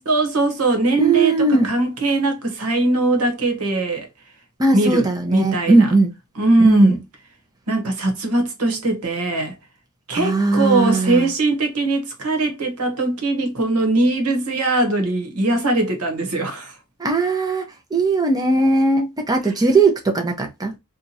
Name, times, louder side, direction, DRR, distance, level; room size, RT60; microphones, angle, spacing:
voice 1, 0.1-4.1 4.7-5.1 5.3-5.9 6.4-7.0 7.7-9.5 10.1-16.8, right 2 dB, 75° right, 1.2 m, -20 dB
voice 2, 1.0-1.7 4.6-6.1 6.6-7.0 10.1-11.3 17.0-20.7, right 3 dB, 15° right, 0.7 m, -18 dB
2.9 x 2.4 x 4.0 m
head